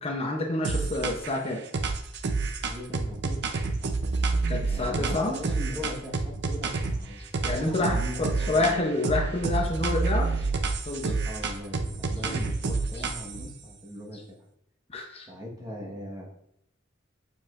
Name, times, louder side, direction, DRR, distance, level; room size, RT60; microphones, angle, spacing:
voice 1, 0.0-1.6 4.5-5.4 7.4-10.5 10.9-11.2 12.2-12.4 14.1-14.2 14.9-15.3, left 2 dB, 30° left, 2 dB, 0.7 m, -28 dB
sound 1, 0.6-1.4 1.7-7.0 7.3-8.8 9.0-13.5, right 3 dB, 60° right, 0.6 m, -28 dB
voice 2, 2.6-3.9 4.6-7.2 7.6-8.8 11.3-14.4 15.3-16.3, left 1 dB, 20° right, -2 dB, 1.3 m, -39 dB
7.2 x 5.4 x 2.5 m, 0.76 s
head